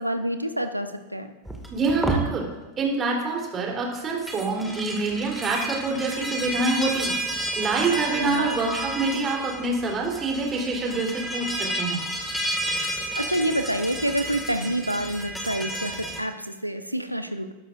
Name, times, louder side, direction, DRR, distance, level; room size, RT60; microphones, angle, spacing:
voice 1, 0.0-1.3 8.2-8.5 13.2-17.5, right 1 dB, 90° right, 8 dB, 0.8 m, -27 dB
sound 1, 1.5-2.3 4.1-16.2, right 1 dB, ahead, 2.0 m, -31 dB
voice 2, 1.7-2.5 2.8-7.2 7.6-12.0, right 3 dB, 25° right, -1 dB, 3.5 m, -26 dB
20.0 x 12.0 x 2.5 m, 1.1 s
figure-of-eight pair, 90°, 0 cm